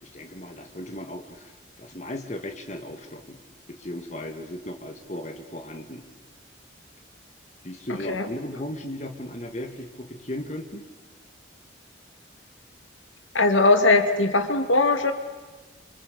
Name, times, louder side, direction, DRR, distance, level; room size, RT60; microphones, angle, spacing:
voice 1, 0.0-3.4 3.7-6.0 7.6-10.9, left 1 dB, 35° left, 5 dB, 2.0 m, -36 dB
voice 2, 13.3-15.1, left 3 dB, 90° left, 7 dB, 2.4 m, -20 dB
28.0 x 26.0 x 8.1 m, 1.2 s
head